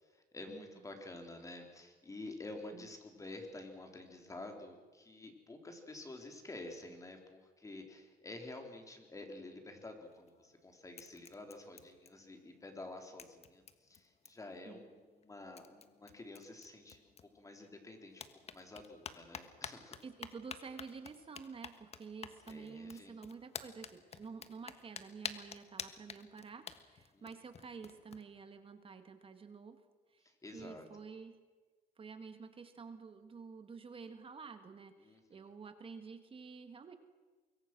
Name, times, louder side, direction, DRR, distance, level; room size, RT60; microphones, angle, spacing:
voice 1, 0.1-20.0 22.5-23.1 27.1-27.3 30.2-30.8 35.0-35.5, left 2 dB, 20° left, 4 dB, 3.9 m, -50 dB
sound 1, 10.1-10.6 10.9-12.5 12.8-12.9 13.2-14.6 15.2-15.3 15.6-17.7 18.1-28.2, left 6 dB, 40° left, 1.5 m, -50 dB
voice 2, 20.0-29.8 30.1-31.4 32.0-37.0, right 5 dB, 30° right, 8 dB, 1.9 m, -50 dB
24.5 x 22.5 x 6.2 m, 1.3 s
cardioid pair, 110°, 17 cm